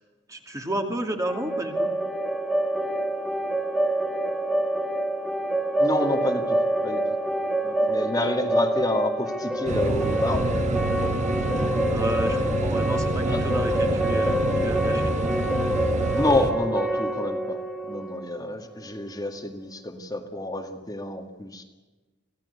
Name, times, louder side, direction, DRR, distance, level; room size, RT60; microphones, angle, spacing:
voice 1, 0.3-1.9 7.6-7.8 11.9-15.2, equal, 15° right, 4 dB, 2.5 m, -31 dB
sound 1, 1.3-19.0, right 1 dB, ahead, 1.6 m, -27 dB
voice 2, 5.8-6.6 6.8-7.0 7.9-10.7 13.3-13.4 16.2-17.6 17.8-21.6, left 1 dB, 20° left, 4 dB, 2.0 m, -28 dB
sound 2, 9.7-16.5, right 2 dB, 40° right, 1.5 m, -27 dB
25.0 x 17.0 x 8.2 m, 1.2 s
head